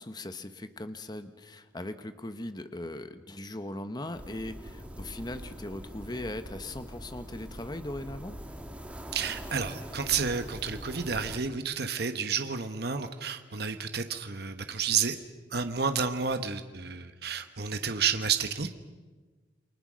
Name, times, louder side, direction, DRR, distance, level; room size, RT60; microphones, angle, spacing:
voice 1, 0.0-8.3, left 1 dB, 25° left, 9 dB, 1.0 m, -39 dB
sound 1, 4.1-11.4, equal, 5° right, 2.3 m, -43 dB
voice 2, 9.1-15.2 15.5-18.7, right 6 dB, 60° right, 8 dB, 1.2 m, -30 dB
29.0 x 24.0 x 6.3 m, 1.3 s
head